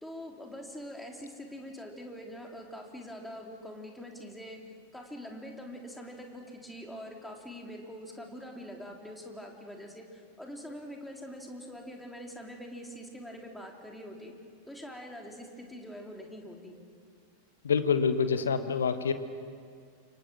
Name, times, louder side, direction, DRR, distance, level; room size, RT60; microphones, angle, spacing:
voice 1, 0.0-4.6 4.9-14.3 14.7-16.8, equal, 5° left, 1 dB, 3.5 m, -44 dB
voice 2, 17.6-19.1, left 6 dB, 70° left, 10 dB, 1.5 m, -26 dB
28.5 x 25.5 x 6.3 m, 2.2 s
figure-of-eight pair, 90°, 0 cm